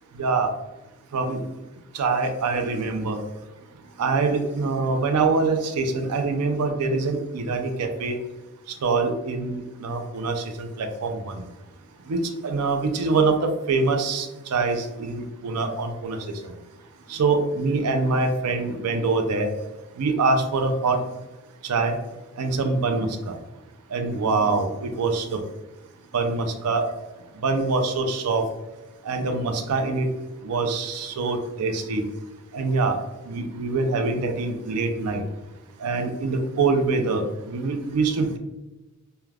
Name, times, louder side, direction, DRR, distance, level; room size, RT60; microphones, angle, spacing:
voice 1, 0.1-0.5 1.1-1.4 1.9-3.2 4.0-8.2 8.8-11.4 12.1-16.2 16.4-16.5 17.1-19.5 20.0-21.0 21.6-21.9 22.4-23.3 23.9-25.4 26.1-26.9 27.4-28.4 29.0-30.1 30.4-32.0 32.5-33.0 33.3-35.2 35.8-38.4, right 3 dB, 90° right, 6 dB, 0.4 m, -24 dB
2.3 x 2.2 x 3.2 m, 1.1 s
head